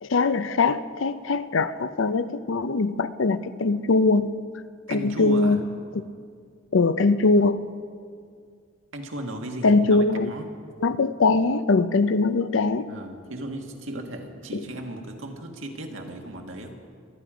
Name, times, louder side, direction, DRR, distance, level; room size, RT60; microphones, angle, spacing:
voice 1, 0.0-4.3 4.9-5.6 6.7-7.6 9.6-10.3 10.8-12.9, left 3 dB, 80° left, 13 dB, 0.6 m, -21 dB
voice 2, 4.9-5.6 8.9-10.5 12.9-16.8, right 1 dB, 90° right, 2 dB, 1.8 m, -36 dB
23.0 x 10.5 x 5.0 m, 2.2 s
head